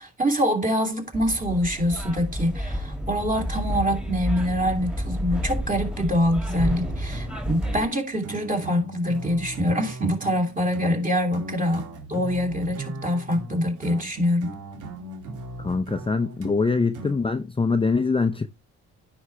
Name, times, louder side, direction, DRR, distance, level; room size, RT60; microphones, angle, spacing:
voice 1, 0.0-14.5, equal, 25° right, 3.1 m, -25 dB
sound 1, 1.1-7.9, equal, 5° right, 1.9 m, -30 dB
sound 2, 6.6-17.4, right 2 dB, 90° right, 2.3 m, -38 dB
voice 2, 15.6-18.5, left 4 dB, 20° left, 0.6 m, -23 dB
9.6 x 5.8 x 3.3 m
cardioid pair, 90°, 30 cm